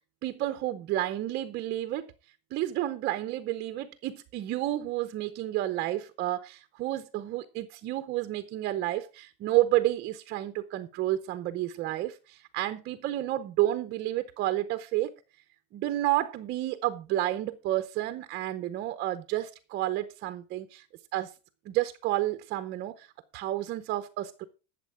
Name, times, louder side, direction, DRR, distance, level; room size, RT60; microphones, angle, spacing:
voice 1, 0.2-2.1 2.5-15.1 15.7-20.8 21.1-21.3 21.7-24.4, right 15 dB, 25° right, 0.7 m, -30 dB
13.0 x 7.5 x 4.8 m
supercardioid pair, 170°, 39 cm